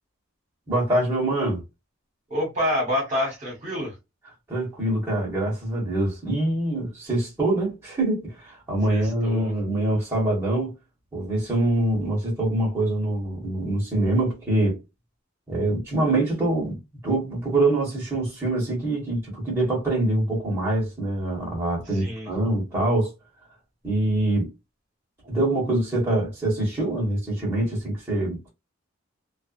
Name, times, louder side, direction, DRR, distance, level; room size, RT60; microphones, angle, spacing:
voice 1, 0.7-1.6 4.5-10.7 11.1-14.8 15.5-16.8 17.0-23.1 23.8-24.5 25.2-28.5, right 1 dB, 10° right, 1.2 m, -24 dB
voice 2, 2.3-3.9 8.9-9.5 21.9-22.3, left 1 dB, 35° right, 1.3 m, -27 dB
2.4 x 2.3 x 2.5 m
head